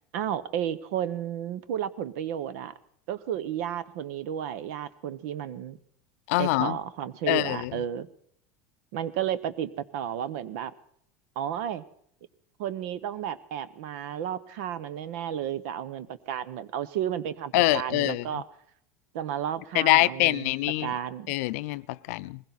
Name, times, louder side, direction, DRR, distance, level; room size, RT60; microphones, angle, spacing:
voice 1, 0.1-2.7 3.1-5.8 6.4-8.1 8.9-10.7 11.4-11.8 12.6-18.4 19.1-20.5 20.8-21.4, right 10 dB, 75° right, 1.0 m, -32 dB
voice 2, 6.3-6.8 7.3-7.8 17.5-18.4 19.7-20.9 21.3-22.4, left 19 dB, 80° left, 0.5 m, -25 dB
21.0 x 16.0 x 4.1 m
supercardioid pair, 135°, 8 cm